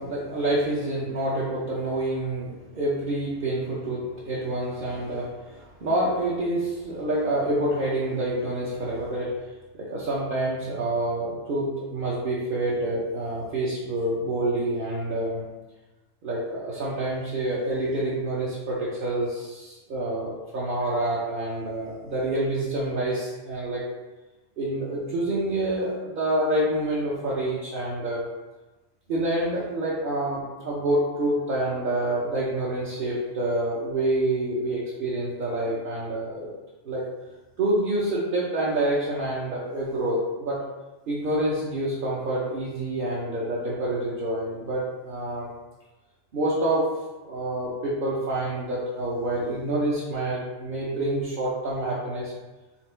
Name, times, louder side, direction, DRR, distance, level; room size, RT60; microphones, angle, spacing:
voice 1, 0.0-9.3 9.7-15.4 16.2-23.8 24.6-28.2 29.1-36.5 36.8-37.0 37.6-40.6 41.1-45.5 46.3-46.8 47.2-52.3, right 1 dB, 50° right, -6 dB, 0.9 m, -27 dB
4.3 x 2.5 x 4.3 m, 1.1 s
omnidirectional pair, 1.2 m